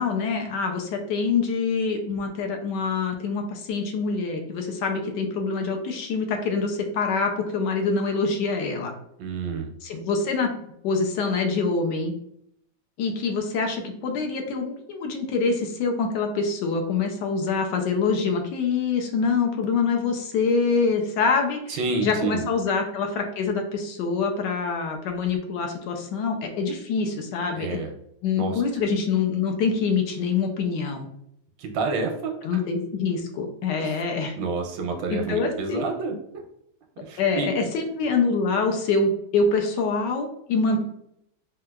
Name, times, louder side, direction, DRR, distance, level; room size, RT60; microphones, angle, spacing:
voice 1, 0.0-8.9 9.8-12.1 13.0-27.8 28.2-31.1 32.4-34.4 35.1-35.8 37.2-40.8, left 4 dB, 75° left, 3 dB, 1.1 m, -25 dB
voice 2, 9.2-9.7 21.7-22.4 27.6-27.9 28.4-28.5 31.6-32.4 33.8-33.9 34.4-36.1 37.1-37.5, right 4 dB, 85° right, 4 dB, 1.3 m, -28 dB
4.4 x 2.3 x 2.2 m, 0.74 s
omnidirectional pair, 2.0 m